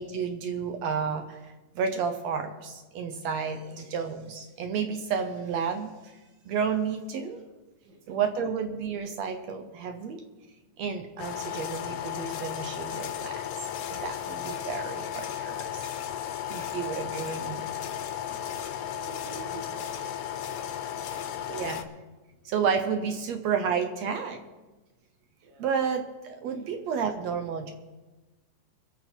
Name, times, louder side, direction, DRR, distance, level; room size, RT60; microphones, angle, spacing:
voice 1, 0.0-5.9 6.4-7.4 8.1-10.2 10.8-13.4 13.9-15.8 16.5-17.6 21.5-21.9 22.4-24.4 25.6-27.7, right 6 dB, 70° right, 6 dB, 1.7 m, -31 dB
voice 2, 3.6-3.9 7.2-7.4 7.8-8.2 16.6-16.9 18.3-21.7 25.4-25.7, right 3 dB, 90° right, 1 dB, 3.7 m, -50 dB
sound 1, 11.2-21.8, left 10 dB, 70° left, 1.8 m, -35 dB
23.0 x 8.3 x 4.5 m, 1.2 s
omnidirectional pair, 4.0 m